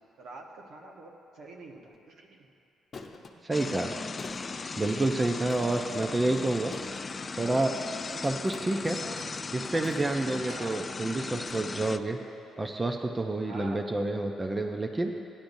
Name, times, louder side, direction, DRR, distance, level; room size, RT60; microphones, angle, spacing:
voice 1, 0.2-2.5 10.5-10.9 13.5-14.0, right 2 dB, 75° right, 0 dB, 1.2 m, -46 dB
sound 1, 1.8-2.0 2.9-3.3 4.2-4.6 5.5-5.9 6.7-7.2 8.5-8.9 9.8-10.4 11.4-11.5, left 4 dB, 50° left, 0.8 m, -46 dB
voice 2, 3.4-3.9 4.8-6.7 7.4-7.7 8.2-9.0 9.5-12.2 12.6-15.1, right 2 dB, 20° right, 3 dB, 0.6 m, -29 dB
sound 2, 3.5-12.0, left 4 dB, 30° left, 0.3 m, -37 dB
15.5 x 10.5 x 2.7 m, 2.7 s
cardioid pair, 90°, 0 cm